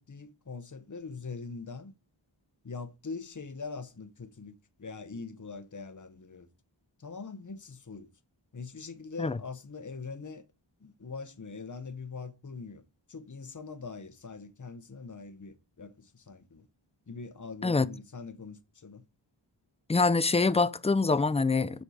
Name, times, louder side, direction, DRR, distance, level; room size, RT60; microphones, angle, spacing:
voice 1, 0.0-1.9 2.6-6.5 7.0-8.1 8.5-10.5 10.8-12.8 13.1-16.7 17.1-19.0 21.7-21.8, left 4 dB, 40° left, 0.8 m, -42 dB
voice 2, 19.9-21.8, left 3 dB, 15° left, 0.4 m, -25 dB
6.8 x 5.4 x 4.7 m
wide cardioid pair, 50°, 47 cm